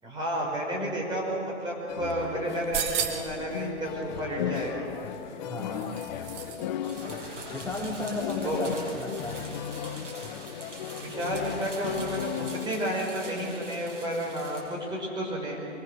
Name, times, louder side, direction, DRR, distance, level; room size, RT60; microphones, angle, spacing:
voice 1, 0.0-4.8 8.4-8.6 11.0-15.6, right 1 dB, 10° right, -2 dB, 5.3 m, -31 dB
sound 1, 1.9-12.7, left 9 dB, 35° left, 1.0 m, -36 dB
sound 2, 2.5-3.4 4.9-6.7 6.9-7.0, right 8 dB, 30° right, 2.1 m, -34 dB
voice 2, 5.4-6.0 7.5-9.5, left 2 dB, 10° left, -1 dB, 2.4 m, -34 dB
sound 3, 6.8-14.6, right 2 dB, 80° right, 7.9 m, -43 dB
24.0 x 24.0 x 6.7 m, 2.9 s
figure-of-eight pair, 120°, 36 cm